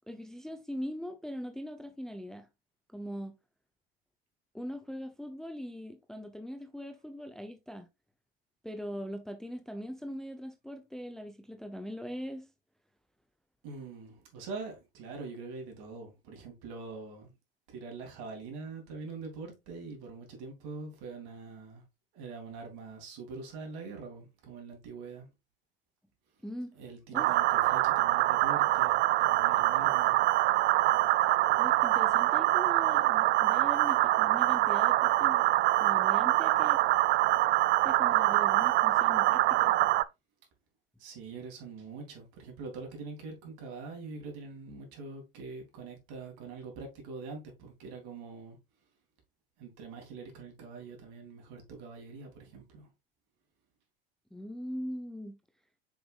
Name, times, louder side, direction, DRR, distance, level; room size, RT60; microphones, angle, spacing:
voice 1, 0.1-2.5 2.9-3.3 4.5-7.9 8.6-12.5 26.4-26.7 27.1-27.3 31.6-35.4 35.8-36.8 37.8-39.8 54.3-55.4, equal, ahead, 0.7 m, -41 dB
voice 2, 13.6-17.3 17.7-21.8 22.1-25.3 26.7-30.2 41.0-48.6 49.6-52.9, right 4 dB, 60° right, 3.4 m, -44 dB
sound 1, 27.2-40.0, right 16 dB, 35° right, 0.4 m, -25 dB
7.2 x 5.8 x 2.5 m
hypercardioid pair, 90°, 29 cm